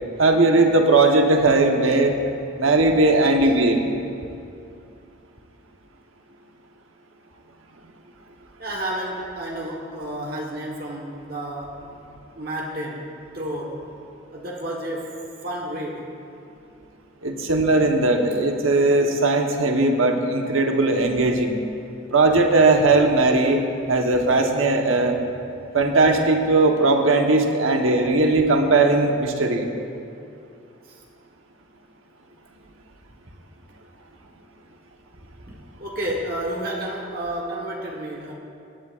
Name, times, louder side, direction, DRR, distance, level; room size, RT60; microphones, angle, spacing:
voice 1, 0.2-2.2 2.6-3.8 17.2-21.6 22.1-23.6 23.9-25.2 25.7-29.6, right 2 dB, 90° right, 3 dB, 1.1 m, -18 dB
voice 2, 8.6-11.8 12.3-13.1 13.3-13.8 14.3-16.1 30.8-31.0 35.5-35.6 35.8-38.3, right 1 dB, 50° right, -2 dB, 1.3 m, -31 dB
18.5 x 12.0 x 2.5 m, 2.6 s
head